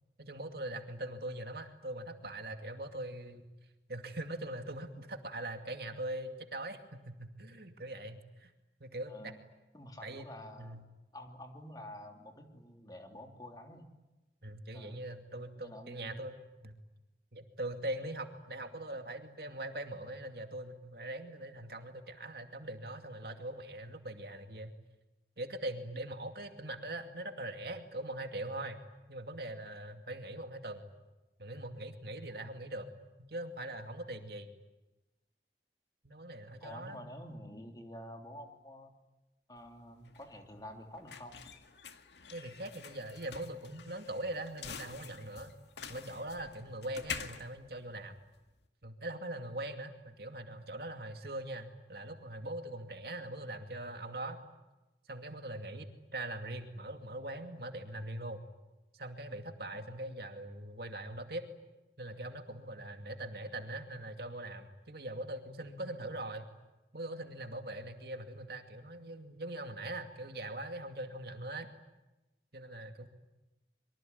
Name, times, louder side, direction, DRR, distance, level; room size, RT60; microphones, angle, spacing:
voice 1, 0.2-3.5 3.9-8.5 8.8-9.3 10.0-10.3 10.6-10.8 14.4-16.7 17.3-24.7 25.4-28.8 29.1-30.9 31.4-32.9 33.2-34.5 36.0-37.0 42.3-45.6 45.9-48.2 48.8-54.4 55.1-58.4 58.9-61.4 62.0-66.5 66.9-71.7 72.5-73.1, right 1 dB, 60° right, 5 dB, 2.4 m, -42 dB
voice 2, 9.7-10.8 11.1-13.9 14.7-15.0 15.6-16.2 32.4-32.5 36.6-38.9 39.5-41.4 59.7-59.9, left 1 dB, 20° left, 3 dB, 3.1 m, -49 dB
sound 1, 39.6-48.6, left 6 dB, 80° left, 2.0 m, -47 dB
25.5 x 24.0 x 9.5 m, 1.0 s
head